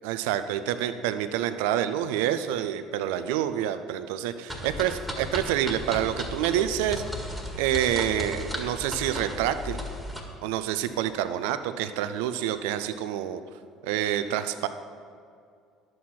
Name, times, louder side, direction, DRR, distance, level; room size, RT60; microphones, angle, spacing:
voice 1, 0.0-7.0 7.6-9.8 10.4-13.4 13.8-14.7, right 11 dB, 75° right, 11 dB, 0.5 m, -27 dB
sound 1, 4.5-10.2, left 1 dB, 5° left, 1.8 m, -35 dB
11.0 x 7.7 x 4.3 m, 2.3 s
hypercardioid pair, 70°, 0 cm